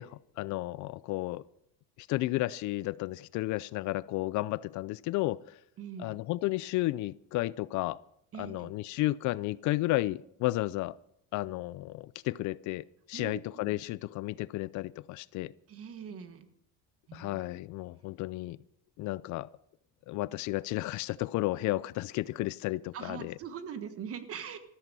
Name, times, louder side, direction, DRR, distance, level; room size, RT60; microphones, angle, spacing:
voice 1, 0.0-1.4 2.0-5.6 6.0-8.0 8.4-11.0 11.3-15.5 17.1-18.6 19.0-19.5 20.1-23.3, left 18 dB, 50° left, 0.5 m, -33 dB
voice 2, 5.8-6.2 8.3-8.7 13.1-13.7 15.7-16.5 17.1-17.4 22.9-24.6, right 8 dB, 35° right, 1.3 m, -42 dB
14.0 x 13.5 x 5.5 m
cardioid pair, 170°, 38 cm